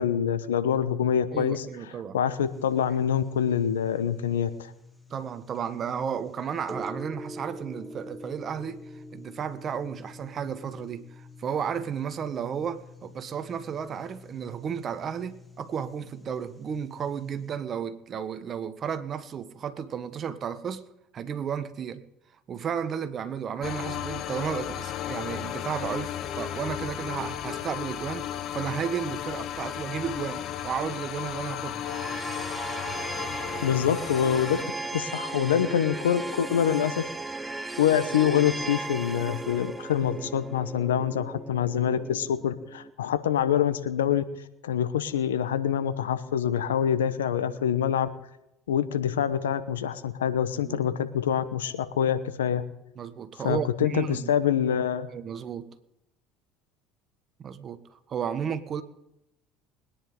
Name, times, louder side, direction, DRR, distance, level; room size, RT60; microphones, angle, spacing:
voice 1, 0.0-1.6 2.1-4.7 33.6-34.6 34.9-37.1 37.8-44.2 44.6-48.1 48.7-52.6 53.4-55.1, left 9 dB, 90° left, 0.9 m, -25 dB
voice 2, 1.3-2.2 5.1-20.9 21.1-22.0 22.5-31.9 50.6-50.8 52.9-54.3 55.1-55.7 57.4-58.8, right 7 dB, 45° right, 1.5 m, -33 dB
sound 1, 2.3-17.6, left 1 dB, 10° left, 2.1 m, -46 dB
sound 2, 23.6-34.6, left 10 dB, 55° left, 1.1 m, -34 dB
sound 3, 31.8-42.9, right 3 dB, 15° right, 1.0 m, -36 dB
21.0 x 10.0 x 3.9 m
hypercardioid pair, 70°, 0 cm